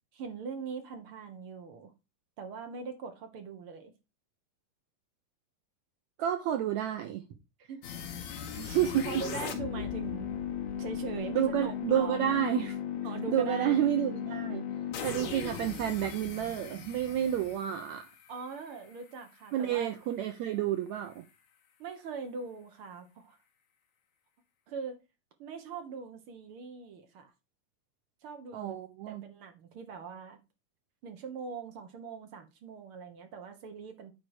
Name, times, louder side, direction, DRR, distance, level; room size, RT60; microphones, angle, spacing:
voice 1, 0.1-1.9 2.4-3.9 7.6-8.1 9.0-10.4 10.7-12.5 13.0-13.8 18.3-19.9 21.8-23.4 24.7-25.0 25.4-27.3 28.2-28.8 29.1-30.4 31.0-34.1, right 5 dB, 55° right, 1.6 m, -42 dB
voice 2, 6.2-7.2 8.6-9.2 11.4-12.8 13.3-14.6 15.0-18.1 19.5-21.3 28.5-29.2, right 11 dB, 75° right, 1.7 m, -30 dB
sound 1, 7.8-18.8, left 8 dB, 60° left, 2.6 m, -37 dB
9.4 x 4.7 x 4.8 m
omnidirectional pair, 3.9 m